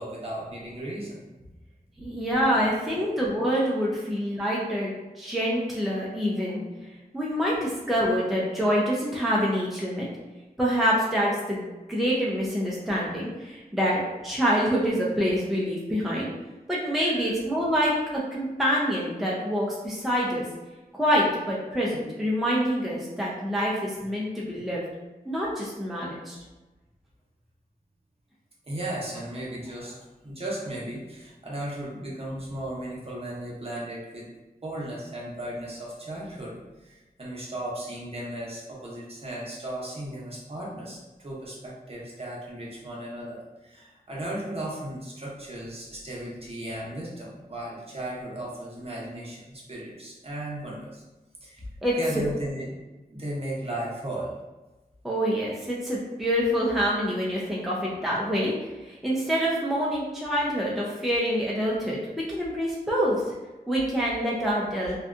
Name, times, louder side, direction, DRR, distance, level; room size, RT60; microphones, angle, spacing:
voice 1, 0.0-1.5 2.0-2.1 2.7-3.0 17.0-17.2 24.5-24.6 28.6-30.0 30.2-34.3 34.6-51.0 51.4-51.6 52.0-52.7 53.1-54.3, right 1 dB, 40° right, -5 dB, 0.8 m, -36 dB
voice 2, 2.0-6.6 7.1-10.1 10.6-11.6 11.9-16.3 16.7-20.4 20.9-24.8 25.3-26.4 51.8-52.2 55.0-58.5 58.9-62.0 62.3-63.2 63.7-65.0, equal, ahead, -5 dB, 0.5 m, -26 dB
2.6 x 2.3 x 2.3 m, 1.1 s
wide cardioid pair, 90°, 16 cm